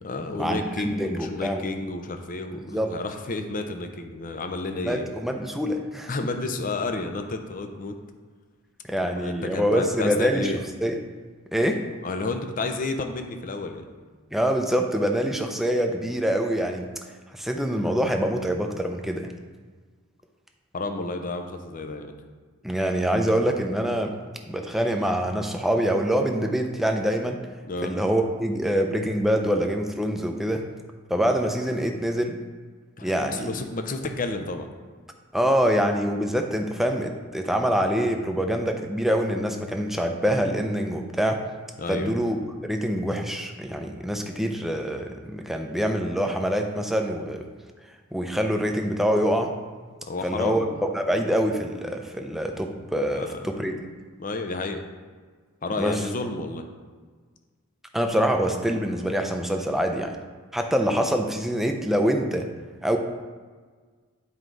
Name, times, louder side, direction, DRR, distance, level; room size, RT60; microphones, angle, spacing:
voice 1, 0.0-5.1 6.1-8.0 9.0-10.6 12.0-13.9 20.7-22.1 27.7-27.9 33.0-34.7 41.8-42.1 50.1-50.8 53.1-53.4 53.7-53.8 54.2-54.8 55.6-56.6, left 3 dB, 40° left, 6 dB, 0.6 m, -31 dB
voice 2, 1.0-1.6 2.5-2.9 4.8-6.1 8.8-10.5 10.8-10.9 11.5-11.8 14.3-16.9 17.3-19.3 22.6-24.1 24.5-27.4 27.8-30.6 31.1-32.4 33.0-33.5 35.3-41.4 41.9-47.5 48.1-49.5 50.2-53.7 55.8-56.0 57.9-60.2 60.5-62.5 62.8-63.0, equal, ahead, 3 dB, 0.5 m, -25 dB
9.5 x 4.7 x 3.9 m, 1.5 s
head